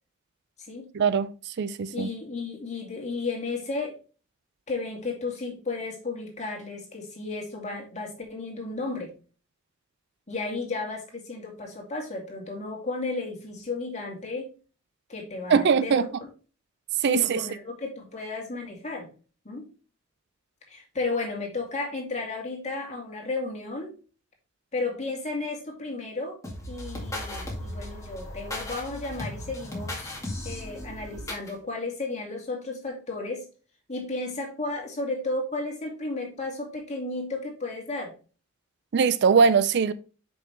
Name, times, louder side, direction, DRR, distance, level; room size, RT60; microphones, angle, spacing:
voice 1, 0.9-1.3 1.6-2.1 15.5-16.0 17.0-17.4 38.9-39.9, right 6 dB, 55° right, 0.4 m, -21 dB
voice 2, 1.9-4.0 4.7-9.1 10.3-14.5 15.1-16.1 17.0-19.1 19.4-19.6 20.7-23.9 24.7-26.4 26.7-33.5 33.9-38.1, left 3 dB, 35° left, 2.3 m, -33 dB
sound 1, 26.4-31.5, left 1 dB, 15° left, 2.0 m, -36 dB
6.6 x 5.4 x 3.3 m
head